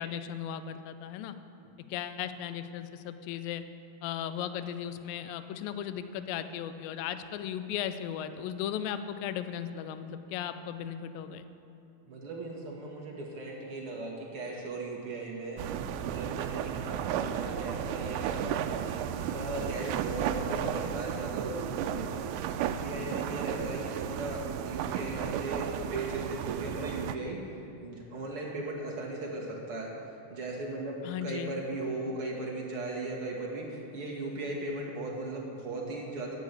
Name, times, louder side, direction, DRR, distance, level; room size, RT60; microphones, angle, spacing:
voice 1, 0.0-1.4 1.9-3.6 4.0-11.5 31.0-31.5, left 9 dB, 80° left, 11 dB, 2.3 m, -36 dB
voice 2, 12.1-15.6 16.0-27.6 27.8-29.9 30.3-36.4, right 2 dB, 45° right, -3 dB, 2.2 m, -37 dB
sound 1, 15.6-27.2, right 9 dB, 90° right, 2.5 m, -34 dB
10.5 x 9.8 x 8.3 m, 3.0 s
omnidirectional pair, 4.4 m